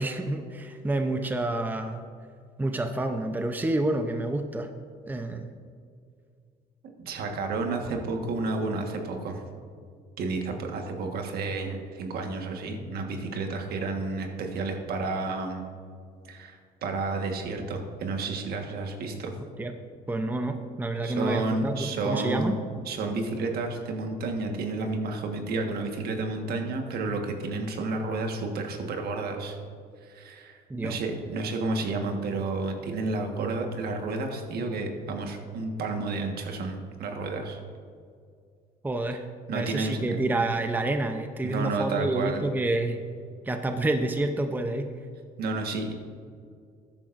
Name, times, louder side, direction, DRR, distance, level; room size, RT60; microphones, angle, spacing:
voice 1, 0.0-2.0 2.6-4.7 5.0-5.5 19.6-19.7 20.1-22.5 30.7-31.0 38.8-43.0 43.4-44.9, right 2 dB, 10° right, 6 dB, 0.7 m, -28 dB
voice 2, 7.0-9.4 10.2-15.7 16.2-19.3 21.0-22.5 22.8-29.6 30.0-37.6 39.5-40.2 41.4-42.4 45.4-45.9, right 3 dB, 65° right, 3 dB, 1.5 m, -31 dB
13.0 x 10.5 x 2.6 m, 2.2 s
cardioid pair, 100°, 17 cm